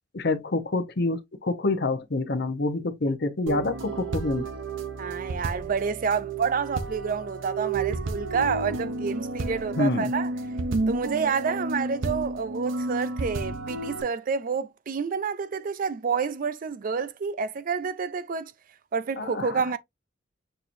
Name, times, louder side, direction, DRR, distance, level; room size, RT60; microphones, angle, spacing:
voice 1, 0.1-4.5 9.8-10.1 19.2-19.6, left 2 dB, 55° left, 0.8 m, -27 dB
sound 1, 3.5-14.0, right 3 dB, 85° right, 0.7 m, -31 dB
voice 2, 5.0-10.3 10.9-18.5 18.9-19.8, right 5 dB, 45° right, 0.4 m, -29 dB
6.6 x 2.9 x 2.6 m
head